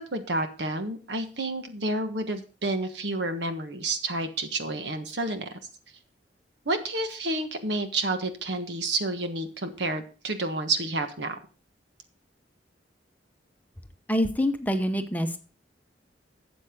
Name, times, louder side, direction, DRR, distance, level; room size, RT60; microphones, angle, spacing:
voice 1, 0.0-5.6 6.6-11.4, right 2 dB, 75° right, 7 dB, 1.4 m, -30 dB
voice 2, 14.1-15.4, equal, 10° left, 7 dB, 0.8 m, -26 dB
12.5 x 7.8 x 3.7 m, 0.36 s
head